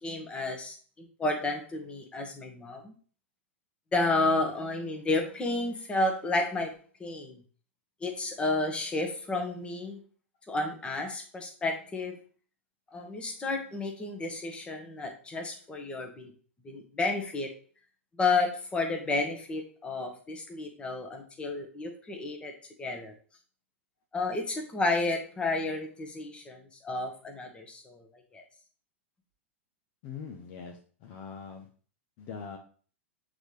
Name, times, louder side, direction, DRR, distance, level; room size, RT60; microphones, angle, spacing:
voice 1, 0.0-2.9 3.9-6.7 7.0-7.4 8.0-10.0 10.5-12.1 12.9-16.3 16.6-17.5 18.2-22.5 22.8-23.1 24.1-28.4, left 2 dB, 15° left, 4 dB, 1.3 m, -31 dB
voice 2, 30.0-31.7 32.2-32.6, left 6 dB, 45° left, 3 dB, 0.9 m, -42 dB
8.0 x 3.9 x 3.2 m, 0.41 s
figure-of-eight pair, 95°, 7 cm